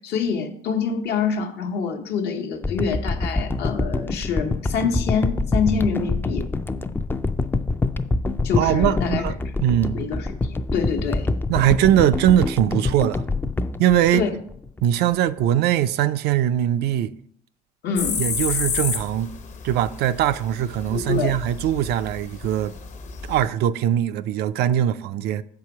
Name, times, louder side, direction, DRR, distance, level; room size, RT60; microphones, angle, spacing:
voice 1, 0.0-6.5 8.4-9.2 9.9-10.3 10.7-11.3 14.1-14.3 17.8-18.2 20.9-21.4, left 6 dB, 75° left, 1.1 m, -25 dB
sound 1, 2.6-14.9 15.4-15.5, left 3 dB, 15° left, 0.3 m, -26 dB
voice 2, 8.5-10.0 11.5-13.2 13.8-14.2 14.8-17.1 18.2-19.3 19.6-22.8 23.3-25.4, right 11 dB, 75° right, 0.4 m, -21 dB
sound 2, 18.0-23.5, left 6 dB, 45° left, 0.8 m, -31 dB
6.8 x 4.8 x 5.9 m
cardioid pair, 110°, 17 cm